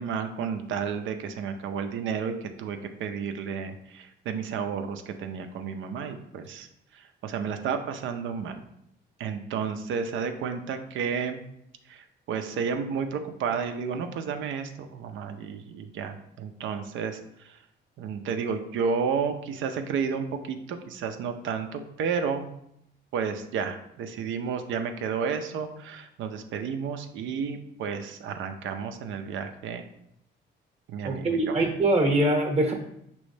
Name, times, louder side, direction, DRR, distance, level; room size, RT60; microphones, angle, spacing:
voice 1, 0.0-6.7 6.9-8.6 9.2-11.4 11.9-17.6 18.0-22.5 23.1-29.8 30.9-31.6, right 6 dB, 80° right, 7 dB, 0.5 m, -32 dB
voice 2, 31.0-32.7, right 1 dB, 30° right, 2 dB, 0.9 m, -23 dB
5.2 x 3.0 x 3.2 m, 0.75 s
cardioid pair, 90°, 20 cm